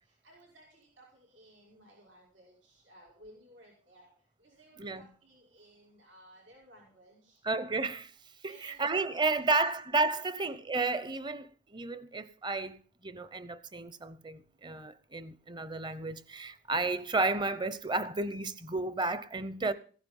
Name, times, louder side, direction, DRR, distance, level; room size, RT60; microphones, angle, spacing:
voice 1, 0.2-4.1 4.4-7.4 8.4-9.4 9.8-10.2, right 1 dB, 90° right, 5.8 m, -58 dB
voice 2, 7.4-8.1 8.4-19.7, right 3 dB, 25° right, 0.8 m, -32 dB
16.0 x 10.0 x 5.5 m
head